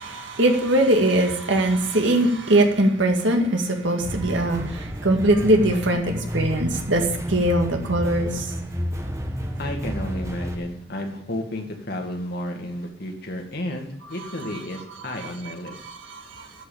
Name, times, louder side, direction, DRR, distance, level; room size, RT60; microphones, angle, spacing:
voice 1, 0.0-8.5 15.2-15.3 15.7-16.5, right 1 dB, 70° right, 2 dB, 2.1 m, -21 dB
sound 1, 4.0-10.6, equal, 15° right, 1.3 m, -31 dB
voice 2, 9.6-15.8, left 1 dB, 55° left, 3 dB, 2.0 m, -32 dB
12.5 x 5.9 x 8.6 m, 0.81 s
head